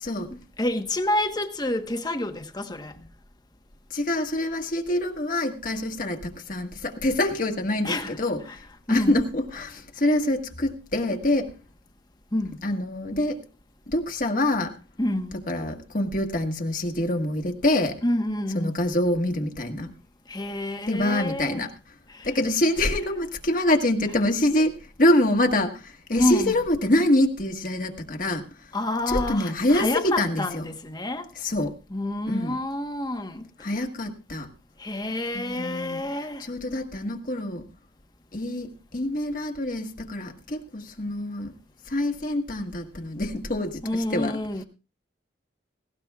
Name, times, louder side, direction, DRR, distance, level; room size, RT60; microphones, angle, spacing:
voice 1, 0.3-3.0 7.8-8.2 8.5-8.6 8.9-9.2 12.3-12.6 15.0-15.3 18.0-18.7 20.3-21.6 22.1-22.3 26.2-26.5 28.7-31.3 31.9-33.7 34.8-36.5 43.8-44.6, left 1 dB, 20° left, 1.2 m, -28 dB
voice 2, 3.9-8.6 8.9-11.5 12.6-13.4 13.9-14.7 15.5-18.0 18.5-19.9 20.9-21.7 22.2-28.7 29.1-30.6 31.3-31.7 32.3-32.6 33.6-34.5 35.3-36.0 36.4-37.6 38.3-41.5 41.9-44.4, left 1 dB, 45° left, 1.6 m, -25 dB
18.5 x 17.5 x 2.4 m
head